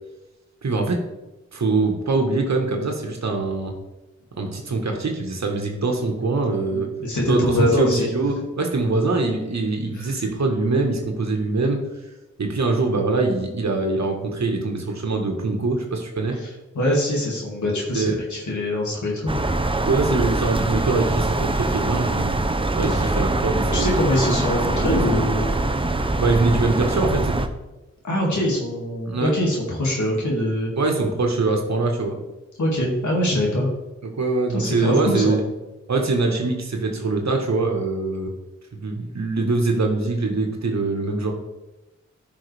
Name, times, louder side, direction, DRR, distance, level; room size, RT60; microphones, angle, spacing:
voice 1, 0.6-1.0 1.5-3.7 4.3-6.9 7.3-11.8 12.4-16.4 17.9-18.1 19.9-22.3 22.8-24.2 24.9-25.1 26.2-27.5 29.1-29.3 30.8-32.2 34.0-35.4 35.9-38.3 38.7-41.3, right 3 dB, 65° right, 2 dB, 1.5 m, -23 dB
voice 2, 6.7-8.1 9.9-10.1 16.3-19.3 22.9-23.2 23.7-25.5 28.0-30.7 32.6-33.7 34.5-35.4, left 1 dB, 75° left, -3 dB, 2.5 m, -23 dB
sound 1, 19.3-27.5, right 2 dB, 20° right, 0.7 m, -23 dB
13.0 x 5.7 x 3.5 m, 1.1 s
wide cardioid pair, 65°, 29 cm